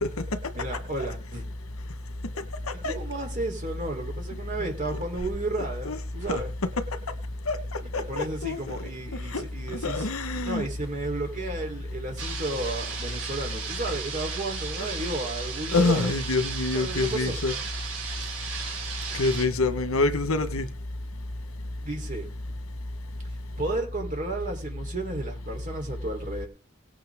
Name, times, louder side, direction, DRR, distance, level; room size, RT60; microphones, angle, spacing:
voice 1, 0.5-1.4 2.7-6.5 7.8-10.1 10.4-16.3 16.7-17.4 19.1-19.2 21.8-22.3 23.6-26.5, right 2 dB, 40° right, 3.8 m, -33 dB
voice 2, 7.9-8.8 9.3-9.4 9.7-10.6 15.7-17.5 19.2-20.7, left 3 dB, 85° left, 1.5 m, -26 dB
sound 1, 12.2-19.5, right 5 dB, 65° right, 4.9 m, -35 dB
18.0 x 8.8 x 3.7 m
head